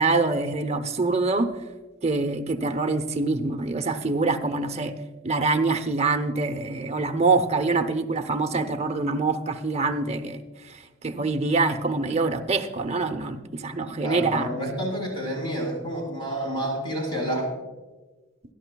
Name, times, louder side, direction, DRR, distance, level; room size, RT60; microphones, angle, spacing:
voice 1, 0.0-1.5 2.0-4.9 5.2-14.5, right 3 dB, 30° right, 7 dB, 0.7 m, -25 dB
voice 2, 14.0-17.5, equal, 25° left, -1 dB, 4.7 m, -29 dB
20.5 x 12.0 x 2.3 m, 1.2 s
head